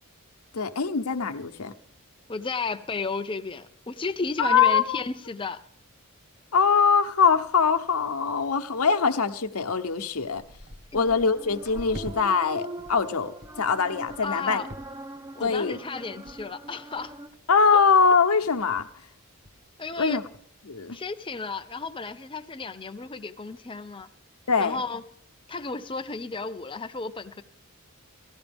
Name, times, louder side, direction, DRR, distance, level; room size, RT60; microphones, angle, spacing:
voice 1, 0.5-1.7 4.4-5.0 6.5-10.4 10.9-14.6 15.4-15.8 17.5-18.9 20.0-20.2 20.7-21.0 24.5-24.8, left 5 dB, 75° left, 7 dB, 0.9 m, -23 dB
voice 2, 2.3-5.6 10.9-11.1 14.2-14.7 15.3-17.1 17.7-17.8 19.8-20.2 20.9-24.1 24.6-25.0 25.5-27.4, left 4 dB, 25° left, 9 dB, 0.7 m, -33 dB
sound 1, 7.3-7.6 7.8-8.1 8.7-8.8 9.5-9.6 9.9-12.2 12.5-13.1 13.4-13.6 14.1-14.4 14.7-15.1 15.4-15.8 16.3-16.4 16.7-16.8 17.0-17.4 17.8-18.0 18.3-18.4 18.6-19.0 19.4-19.5, equal, 45° right, 1.4 m, -45 dB
sound 2, 11.0-17.3, right 1 dB, 15° right, 0.7 m, -42 dB
18.0 x 14.0 x 3.5 m, 0.66 s
head